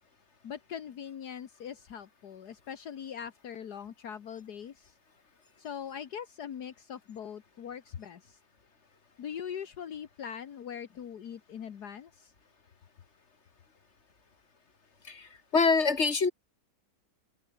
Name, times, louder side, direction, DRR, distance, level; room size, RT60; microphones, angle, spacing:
voice 1, 0.4-4.9 5.6-8.4 9.2-12.3, left 8 dB, 70° left, 1.8 m, -41 dB
voice 2, 15.0-16.3, left 4 dB, 40° left, 2.8 m, -25 dB
open air
omnidirectional pair, 1.8 m